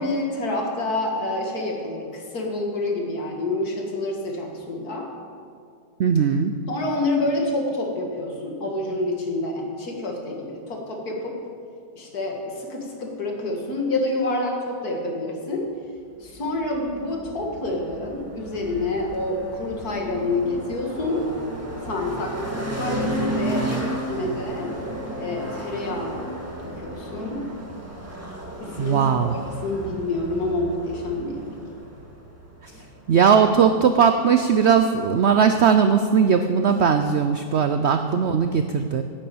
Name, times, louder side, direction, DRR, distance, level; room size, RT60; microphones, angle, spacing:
voice 1, 0.0-5.1 6.7-11.4 12.0-15.7 16.2-21.3 21.8-24.8 25.2-27.5 28.6-31.6 37.6-37.7, left 2 dB, 60° left, 1 dB, 2.5 m, -28 dB
voice 2, 6.0-6.5 28.8-29.3 33.1-39.0, right 6 dB, 75° right, 8 dB, 0.6 m, -19 dB
sound 1, 16.2-33.7, right 1 dB, 10° right, 1.7 m, -33 dB
11.5 x 8.7 x 8.6 m, 2.3 s
omnidirectional pair, 1.8 m